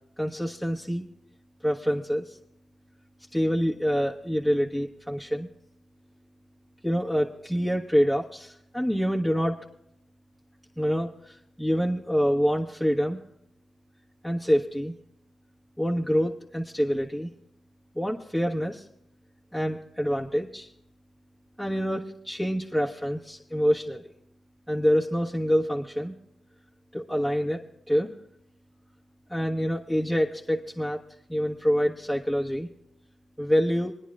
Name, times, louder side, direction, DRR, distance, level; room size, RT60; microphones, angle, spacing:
voice 1, 0.2-1.0 1.6-2.4 3.3-5.5 6.8-9.6 10.8-13.2 14.2-14.9 15.8-17.3 17.9-18.9 19.5-20.7 21.6-24.1 24.7-26.1 26.9-28.1 29.3-31.0 31.3-32.7 33.4-33.9, equal, 5° left, -3 dB, 1.4 m, -26 dB
28.0 x 10.0 x 2.5 m, 0.78 s
cardioid pair, 50°, 0 cm